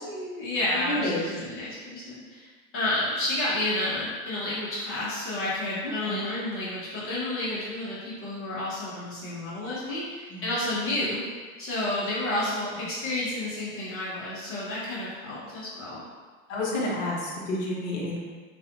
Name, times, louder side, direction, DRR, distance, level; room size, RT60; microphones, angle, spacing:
voice 1, 0.0-11.3 11.6-16.0, left 1 dB, 30° left, -8 dB, 1.1 m, -30 dB
voice 2, 0.7-1.3 5.8-6.2 10.3-10.5 16.5-18.2, left 1 dB, 60° left, -4 dB, 1.0 m, -30 dB
4.0 x 2.5 x 2.5 m, 1.4 s
hypercardioid pair, 90°, 43 cm